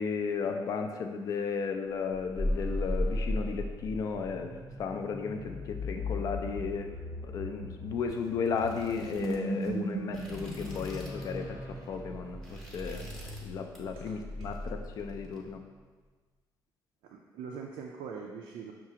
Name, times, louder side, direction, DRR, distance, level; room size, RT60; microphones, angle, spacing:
voice 1, 0.0-6.9 7.2-15.6, left 5 dB, 45° left, 5 dB, 0.3 m, -34 dB
sound 1, 2.3-15.6, equal, 90° left, 1.3 m, -37 dB
sound 2, 8.0-11.4 11.7-11.9 12.3-13.5 13.7-14.1 14.4-15.4, right 1 dB, ahead, 0.7 m, -50 dB
voice 2, 17.0-18.7, right 6 dB, 85° right, 0 dB, 0.4 m, -42 dB
5.8 x 2.4 x 2.8 m, 1.4 s
cardioid pair, 160°, 8 cm